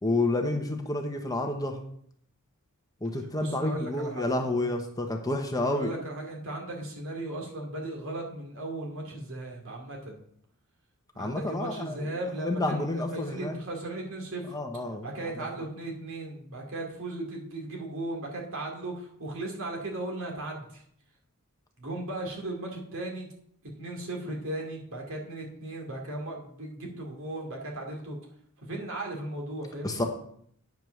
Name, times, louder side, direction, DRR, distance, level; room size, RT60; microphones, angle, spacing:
voice 1, 0.0-1.8 3.0-5.9 11.2-12.0 12.4-13.6 14.5-15.5 29.8-30.0, left 2 dB, 15° left, 4 dB, 0.9 m, -29 dB
voice 2, 3.4-4.3 5.6-10.2 11.1-14.6 15.0-20.8 21.8-23.3 23.8-28.2 28.6-30.0, right 2 dB, 65° right, 0 dB, 2.5 m, -36 dB
9.2 x 5.3 x 6.3 m, 0.66 s
head